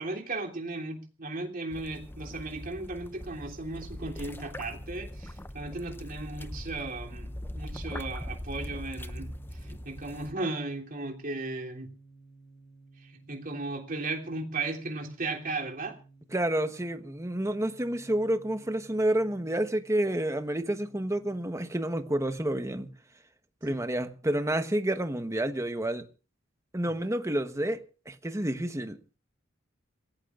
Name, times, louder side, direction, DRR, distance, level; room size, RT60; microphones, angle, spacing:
voice 1, 0.0-11.9 13.0-16.0 23.6-23.8, right 2 dB, 45° right, 3.2 m, -36 dB
sound 1, 1.7-10.3, left 1 dB, 10° left, 0.8 m, -41 dB
sound 2, 3.8-22.1, right 3 dB, 55° left, 5.4 m, -57 dB
voice 2, 16.3-22.9 23.6-26.1 26.7-27.8 28.1-29.0, right 1 dB, 15° right, 1.2 m, -29 dB
27.0 x 17.0 x 2.5 m
head